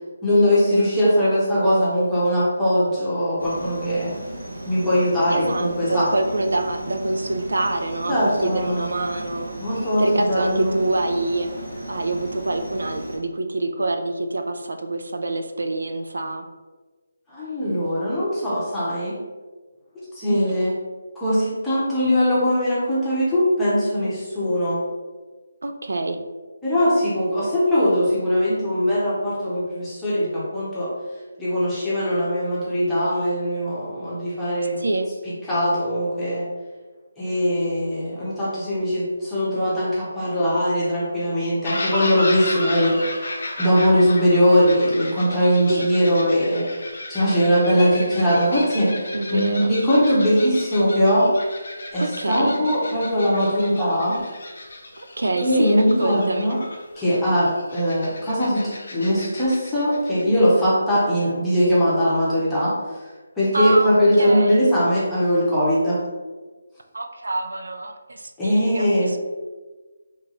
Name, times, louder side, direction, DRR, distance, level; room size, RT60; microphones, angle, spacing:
voice 1, 0.2-4.1 4.7-6.1 8.1-8.9 9.6-10.7 17.3-19.1 20.1-20.7 21.2-24.8 26.6-30.9 31.4-34.8 35.5-36.5 37.2-43.3 43.6-46.7 47.1-48.9 49.3-51.3 51.9-54.2 55.4-56.6 57.0-62.7 63.4-66.0 68.4-69.2, equal, 5° left, -11 dB, 0.7 m, -20 dB
sound 1, 3.4-13.2, right 1 dB, 50° right, 1.4 m, -35 dB
voice 2, 5.3-9.5 10.0-11.5 11.9-16.4 20.3-20.5 25.6-26.2 34.8-35.1 45.7-45.9 49.1-49.7 52.0-52.6 54.9-56.6 63.5-64.6 66.9-69.2, right 2 dB, 85° right, 6 dB, 0.4 m, -26 dB
sound 2, 41.6-60.2, left 2 dB, 55° left, 0.6 m, -34 dB
3.0 x 2.3 x 3.8 m, 1.3 s
hypercardioid pair, 175°, 0 cm